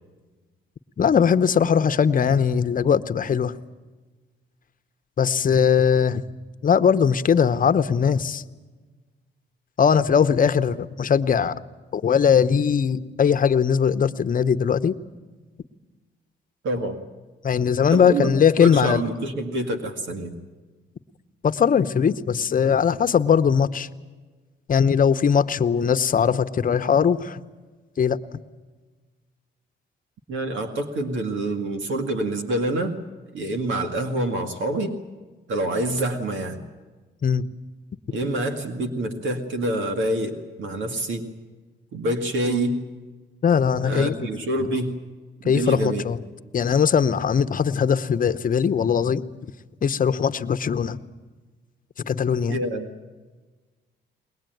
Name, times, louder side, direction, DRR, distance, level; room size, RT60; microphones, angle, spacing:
voice 1, 1.0-3.5 5.2-6.2 6.6-8.4 9.8-11.6 11.9-14.9 17.4-19.0 21.4-23.9 24.7-27.4 28.0-28.2 37.2-37.4 43.4-44.1 45.4-46.2 46.5-49.2 49.8-51.0 52.0-52.6, left 7 dB, 45° left, 11 dB, 0.9 m, -20 dB
voice 2, 16.6-17.0 17.9-20.4 30.3-33.0 33.3-35.0 35.5-36.6 38.1-41.3 41.9-42.8 43.8-45.0 45.4-46.0 52.5-52.9, right 1 dB, 75° right, 6 dB, 2.1 m, -26 dB
21.5 x 20.0 x 9.3 m, 1.3 s
cardioid pair, 90°, 20 cm